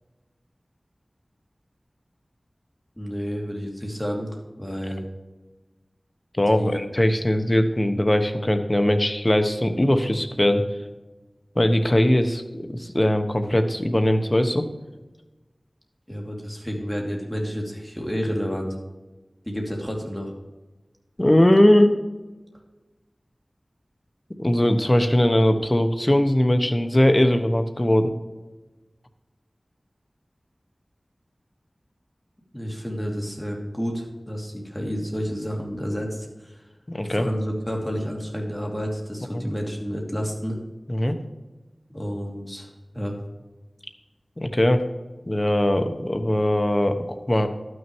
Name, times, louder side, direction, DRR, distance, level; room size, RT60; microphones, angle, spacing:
voice 1, 3.0-5.0 6.5-6.8 16.1-18.7 19.4-20.3 32.5-36.6 37.1-40.6 41.9-43.2, equal, 10° left, 0 dB, 2.6 m, -30 dB
voice 2, 6.4-10.6 11.6-14.7 21.2-22.0 24.4-28.1 36.9-37.3 39.3-39.4 40.9-41.1 44.4-44.8 45.3-47.5, left 1 dB, 30° left, 7 dB, 1.1 m, -20 dB
12.0 x 6.4 x 4.6 m, 1.2 s
wide cardioid pair, 45°, 0 cm